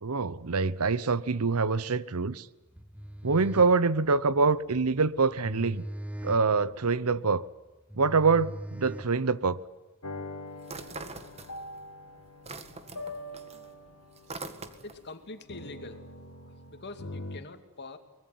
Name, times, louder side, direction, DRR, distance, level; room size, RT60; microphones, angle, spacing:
voice 1, 0.0-2.5 3.2-5.8 6.2-7.4 7.9-9.6, right 4 dB, 75° right, 0.9 m, -25 dB
sound 1, 2.7-9.6, right 1 dB, 5° right, 1.0 m, -42 dB
sound 2, 10.0-17.4, left 1 dB, 70° left, 2.5 m, -43 dB
sound 3, 10.6-11.9 12.2-15.1, right 3 dB, 30° right, 1.7 m, -43 dB
voice 2, 14.8-16.0 16.7-18.0, left 3 dB, 50° left, 2.5 m, -44 dB
24.0 x 21.0 x 9.4 m
head